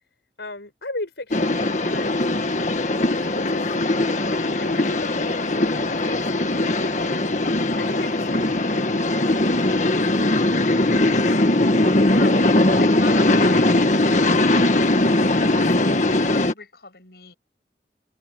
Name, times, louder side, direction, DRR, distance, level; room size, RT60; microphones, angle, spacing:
voice 1, 0.4-3.8 4.5-10.3, left 2 dB, 85° left, 4.8 m, -38 dB
sound 1, 1.3-16.5, left 2 dB, 45° left, 1.6 m, -20 dB
voice 2, 12.0-17.4, left 3 dB, 65° left, 7.1 m, -40 dB
head